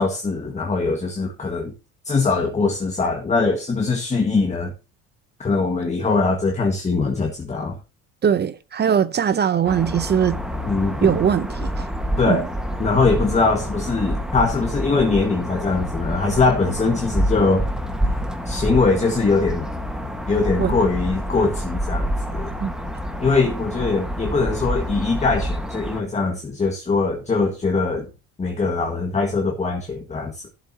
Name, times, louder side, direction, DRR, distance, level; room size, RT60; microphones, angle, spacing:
voice 1, 0.0-1.7 2.1-4.7 5.4-7.8 10.6-11.2 12.2-12.4 12.8-17.7 18.5-19.7 20.3-22.5 23.2-28.1 28.4-30.5, left 4 dB, 20° left, 1.6 m, -22 dB
voice 2, 8.2-10.4 11.0-11.9 12.3-12.5 20.6-20.8 22.6-22.7, right 8 dB, 30° right, 0.7 m, -20 dB
sound 1, 9.6-26.0, equal, ahead, 1.4 m, -27 dB
14.5 x 7.4 x 2.8 m
cardioid pair, 105°, 32 cm